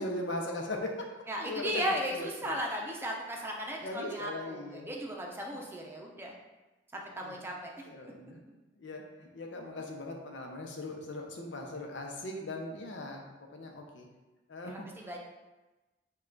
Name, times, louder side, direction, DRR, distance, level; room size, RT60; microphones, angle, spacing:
voice 1, 0.0-1.1 1.4-2.6 3.8-4.9 7.2-7.3 7.9-8.4 8.8-13.2 13.5-14.1 14.5-14.9, left 2 dB, 85° left, 2 dB, 0.7 m, -39 dB
voice 2, 1.3-6.3 6.9-7.7 14.6-15.2, equal, 15° right, -1 dB, 0.6 m, -36 dB
5.5 x 2.4 x 3.8 m, 1.1 s
head